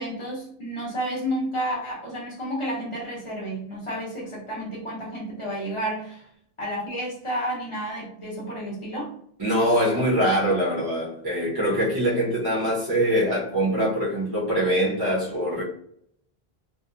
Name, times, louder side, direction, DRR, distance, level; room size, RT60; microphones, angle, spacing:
voice 1, 0.0-6.2 6.6-9.1, equal, 30° left, 0.9 m, -31 dB
voice 2, 9.4-15.6, equal, 25° right, 0.8 m, -23 dB
2.7 x 2.2 x 2.5 m
omnidirectional pair, 1.0 m